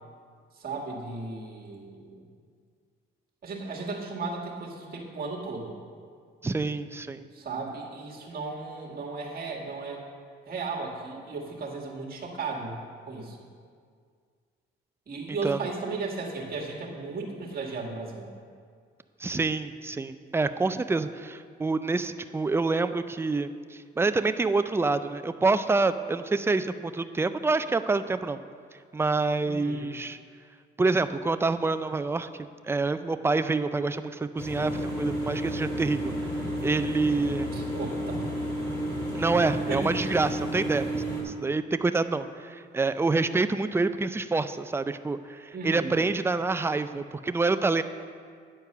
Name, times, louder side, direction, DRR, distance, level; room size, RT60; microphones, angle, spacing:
voice 1, 0.6-2.3 3.4-5.8 7.3-10.0 10.5-12.8 13.1-13.4 15.1-18.3 29.4-29.9 37.5-38.2 39.7-39.9 45.5-46.0, right 3 dB, 50° right, -1 dB, 1.8 m, -35 dB
voice 2, 6.4-7.2 15.4-15.6 19.2-28.4 28.9-30.2 30.8-32.3 32.6-36.1 36.6-37.5 39.1-47.8, right 3 dB, 10° right, 11 dB, 0.4 m, -27 dB
sound 1, 34.4-41.2, equal, 20° left, 2.3 m, -31 dB
9.8 x 4.6 x 6.7 m, 2.1 s
cardioid pair, 90°, 20 cm